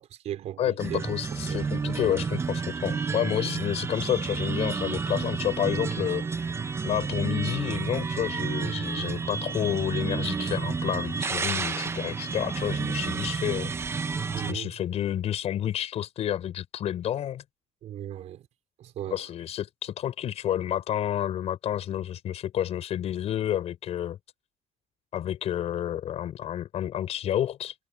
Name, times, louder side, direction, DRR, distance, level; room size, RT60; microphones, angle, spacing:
voice 1, 0.0-1.0 1.5-1.6 1.9-2.1 3.4-3.5 8.9-9.3 14.3-14.7 17.8-18.4 18.8-19.2, right 11 dB, 90° right, 4.5 m, -37 dB
voice 2, 0.6-6.3 6.8-13.7 14.5-17.4 19.1-24.2 25.1-27.7, left 11 dB, 70° left, 5.8 m, -30 dB
sound 1, 0.8-14.5, right 5 dB, 25° right, 0.6 m, -30 dB
cardioid pair, 180°, 11 cm